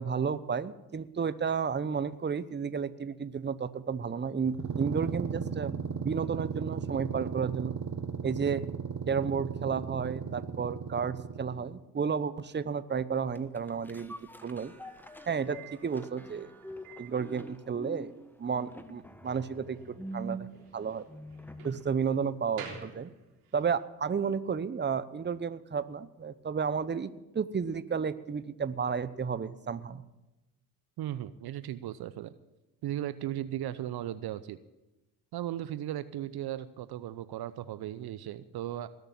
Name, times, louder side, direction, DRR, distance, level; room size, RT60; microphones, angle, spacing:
voice 1, 0.0-7.7 8.2-8.6 9.1-14.1 14.4-14.7 15.3-16.5 17.0-18.1 18.4-20.5 20.7-21.0 21.6-23.1 23.5-30.0, right 6 dB, 25° right, 14 dB, 0.9 m, -32 dB
sound 1, 4.4-11.8, right 6 dB, 40° right, 1.5 m, -36 dB
sound 2, 13.3-21.9 22.3-22.4, right 1 dB, 5° left, 1.3 m, -45 dB
Slam, 14.4-23.7, right 6 dB, 85° right, 3.7 m, -52 dB
voice 2, 31.0-32.3 32.8-34.6 35.3-38.9, right 12 dB, 60° right, 14 dB, 0.8 m, -36 dB
19.5 x 6.7 x 8.8 m, 1.0 s
hypercardioid pair, 50°, 44 cm